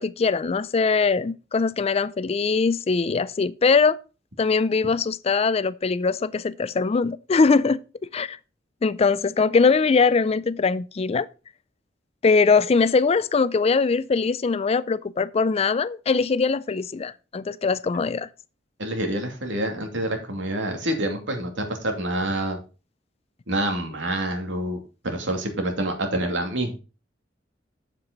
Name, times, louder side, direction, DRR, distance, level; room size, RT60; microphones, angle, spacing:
voice 1, 0.0-4.0 4.4-7.8 8.1-8.4 8.8-11.3 12.2-18.3, left 4 dB, 35° left, 0.4 m, -21 dB
voice 2, 18.8-22.6 23.5-24.8 25.0-26.7, right 1 dB, 90° right, 2.5 m, -27 dB
7.8 x 7.6 x 4.0 m
head